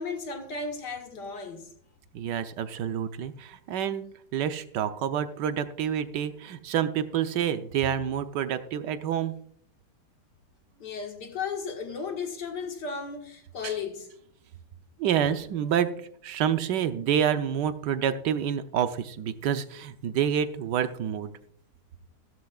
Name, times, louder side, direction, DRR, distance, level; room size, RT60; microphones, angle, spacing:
voice 1, 0.0-1.7 10.8-14.1, left 5 dB, 85° left, 2.2 m, -35 dB
voice 2, 2.1-4.0 4.3-9.3 15.0-15.9 16.2-21.3, right 9 dB, 85° right, 1.4 m, -28 dB
15.5 x 12.5 x 2.4 m
omnidirectional pair, 1.8 m